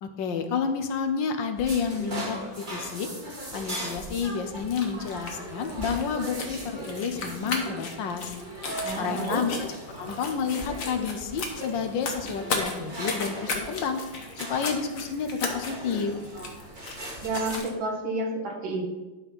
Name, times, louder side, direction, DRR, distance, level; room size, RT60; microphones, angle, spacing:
voice 1, 0.0-3.1 3.5-8.3 9.0-9.7 10.0-14.0 14.4-16.2, left 6 dB, 75° left, 7 dB, 1.5 m, -30 dB
sound 1, 1.6-17.6, right 1 dB, 25° right, 1.5 m, -39 dB
sound 2, 4.6-17.7, left 3 dB, 50° left, 1.4 m, -36 dB
voice 2, 8.8-9.4 17.2-18.9, right 2 dB, 75° right, -1 dB, 2.6 m, -30 dB
11.5 x 4.3 x 5.4 m, 1.1 s
omnidirectional pair, 2.1 m